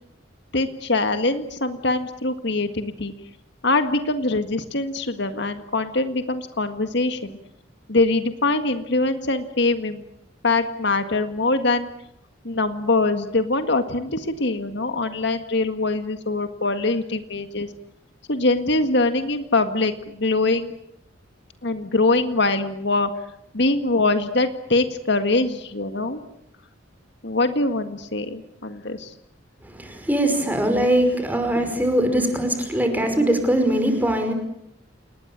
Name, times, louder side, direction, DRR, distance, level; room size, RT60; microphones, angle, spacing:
voice 1, 0.5-3.1 3.6-7.4 7.9-10.0 10.4-11.9 12.5-17.7 18.3-20.7 21.6-23.1 23.5-26.2 27.2-29.1, left 2 dB, 60° left, 8 dB, 1.8 m, -23 dB
voice 2, 29.8-34.3, right 1 dB, 10° right, 6 dB, 5.3 m, -21 dB
29.0 x 20.0 x 8.9 m, 0.78 s
head